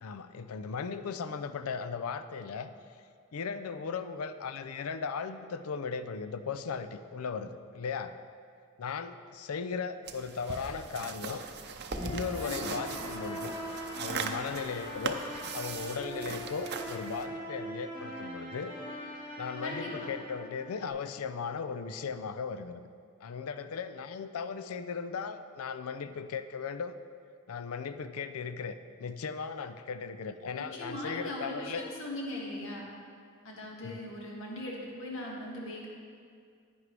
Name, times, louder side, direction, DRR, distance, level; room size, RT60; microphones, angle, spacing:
voice 1, 0.0-2.7 3.3-8.1 8.8-11.4 12.0-13.5 14.0-15.2 15.5-18.7 19.4-22.9 23.2-27.0 27.5-31.8 33.8-34.0, left 5 dB, 85° left, 11 dB, 0.5 m, -37 dB
sound 1, 10.1-17.3, right 5 dB, 50° right, 0.6 m, -40 dB
sound 2, 11.9-20.9, equal, 25° left, 2.0 m, -41 dB
voice 2, 19.6-20.1 30.7-32.9 33.4-35.9, left 1 dB, 65° left, -3 dB, 1.9 m, -39 dB
10.5 x 9.5 x 3.3 m, 2.2 s
head